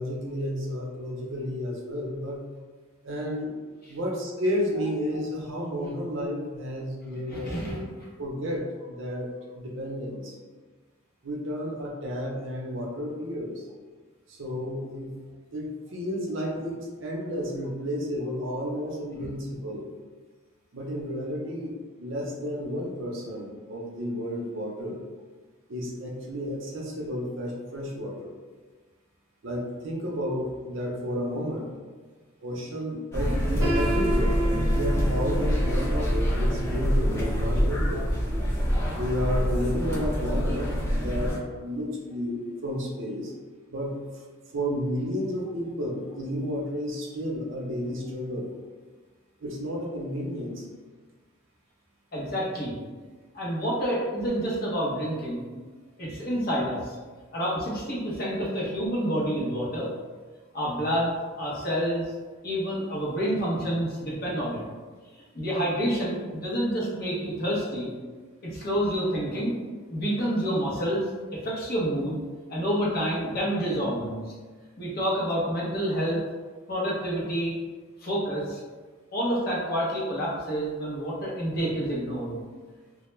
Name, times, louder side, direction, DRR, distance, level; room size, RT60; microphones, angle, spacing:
voice 1, 0.0-2.4 3.0-3.5 3.9-7.8 8.2-10.3 11.2-13.6 14.3-15.1 15.5-19.8 20.7-25.0 25.7-28.3 29.4-31.7 32.4-34.4 34.7-38.0 38.9-40.7 40.9-43.3 43.7-44.0 44.5-48.5 49.4-50.6, equal, 60° right, -1 dB, 0.5 m, -32 dB
voice 2, 7.3-8.1 19.2-19.3 52.1-52.7 53.3-55.5 56.0-57.0 57.3-59.9 60.5-62.1 62.4-64.6 65.3-67.9 68.4-69.6 69.9-72.2 72.5-74.2 74.8-76.2 76.7-77.6 78.0-78.6 79.1-82.4, equal, 45° left, -5 dB, 0.7 m, -28 dB
sound 1, 33.1-41.4, equal, 10° left, 0.4 m, -26 dB
Piano, 33.6-39.5, right 1 dB, 20° right, 0.9 m, -34 dB
2.2 x 2.1 x 3.0 m, 1.4 s
head